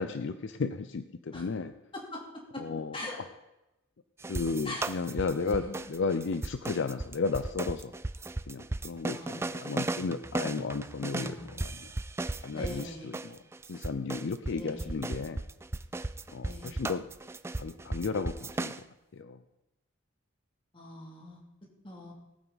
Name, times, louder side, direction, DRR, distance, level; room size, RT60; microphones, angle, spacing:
voice 1, 0.0-1.7 2.6-3.0 4.3-7.9 8.5-11.9 12.4-13.4 13.7-15.4 16.3-17.0 17.6-18.7 19.1-19.4, left 4 dB, 60° left, 11 dB, 0.5 m, -34 dB
voice 2, 1.9-2.6 2.9-3.2 4.6-4.9 5.4-5.8 9.1-9.4 11.2-11.5 12.5-13.1 14.5-15.0 16.4-16.7 20.7-21.4 21.8-22.1, left 1 dB, 25° left, -1 dB, 2.5 m, -42 dB
sound 1, 4.2-12.9 13.1-18.8, right 2 dB, 15° right, 0.3 m, -36 dB
19.0 x 9.2 x 4.0 m, 0.95 s
head